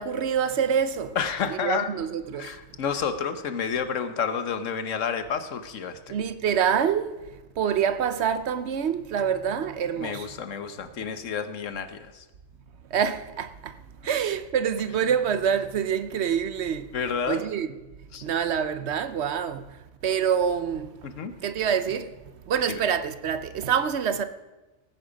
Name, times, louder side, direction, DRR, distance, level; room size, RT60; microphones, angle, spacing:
voice 1, 0.0-1.2 1.5-2.6 6.1-7.2 7.6-10.3 12.9-13.8 14.0-16.9 17.3-17.7 18.2-19.8 20.0-21.0 21.4-22.1 22.5-24.2, right 7 dB, 65° right, 1.0 m, -26 dB
voice 2, 1.2-1.9 2.4-6.1 10.0-12.2 16.9-17.4 18.1-18.2 21.0-21.4 22.7-22.8, left 6 dB, 85° left, 1.3 m, -30 dB
17.5 x 9.9 x 5.1 m
omnidirectional pair, 1.3 m